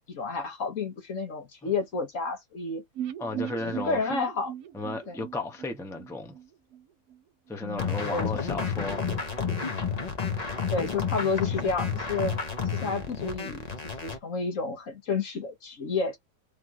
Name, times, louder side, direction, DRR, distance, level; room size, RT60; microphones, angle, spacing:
voice 1, 0.1-2.8 3.3-4.5 5.1-5.2 7.6-8.3 10.7-12.3 12.7-16.2, left 4 dB, 55° left, 1.5 m, -31 dB
sound 1, 3.0-6.8 7.1-7.2 7.5-7.6, right 10 dB, 75° right, 1.2 m, -38 dB
voice 2, 3.2-4.1 4.7-6.3 7.5-9.2, left 2 dB, ahead, 0.8 m, -34 dB
sound 2, 7.8-14.2, left 5 dB, 35° left, 0.7 m, -31 dB
3.6 x 3.1 x 3.7 m
omnidirectional pair, 1.7 m